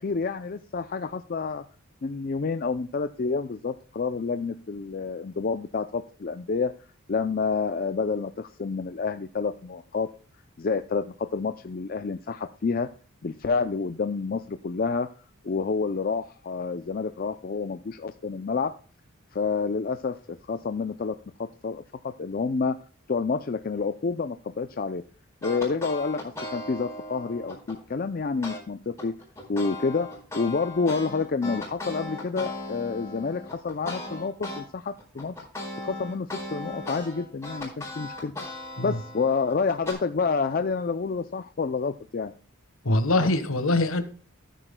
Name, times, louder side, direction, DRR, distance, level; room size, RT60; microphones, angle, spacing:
voice 1, 0.0-1.6 2.0-6.7 7.1-10.1 10.6-12.9 13.2-15.1 15.4-18.7 19.3-22.8 23.1-25.0 25.4-29.1 29.5-35.3 35.8-38.3 38.8-42.3, left 4 dB, 40° left, 0.4 m, -29 dB
sound 1, 25.4-27.8 28.4-28.6 29.0-34.6 35.0-39.9, left 2 dB, 15° left, 4.3 m, -37 dB
voice 2, 42.8-44.0, left 2 dB, 70° left, 1.3 m, -23 dB
14.0 x 9.1 x 2.2 m
head